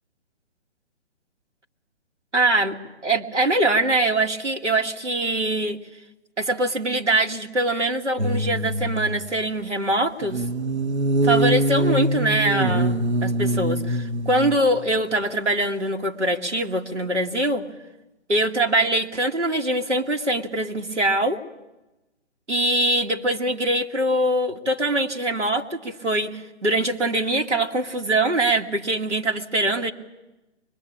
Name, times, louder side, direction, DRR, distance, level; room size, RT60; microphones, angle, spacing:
voice 1, 2.3-5.8 6.4-10.4 11.2-12.9 13.2-17.7 18.3-21.4 22.5-29.9, right 1 dB, 85° right, 1 dB, 2.4 m, -23 dB
sound 1, 8.2-9.2 10.2-14.8 15.2-15.3, right 1 dB, 70° right, 1.6 m, -23 dB
23.5 x 21.5 x 8.8 m, 1.0 s
figure-of-eight pair, 130°, 34 cm